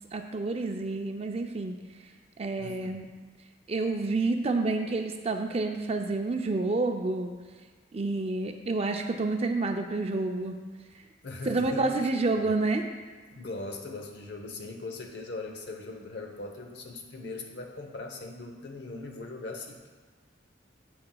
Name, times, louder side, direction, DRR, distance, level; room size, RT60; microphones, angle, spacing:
voice 1, 0.1-1.7 2.4-3.1 3.7-7.3 7.9-10.6 11.4-12.8, right 3 dB, 30° right, 5 dB, 0.4 m, -29 dB
voice 2, 2.6-2.9 11.2-12.1 12.4-12.6 13.3-19.9, left 2 dB, 60° left, 3 dB, 0.9 m, -40 dB
9.6 x 7.7 x 2.3 m, 1.4 s
head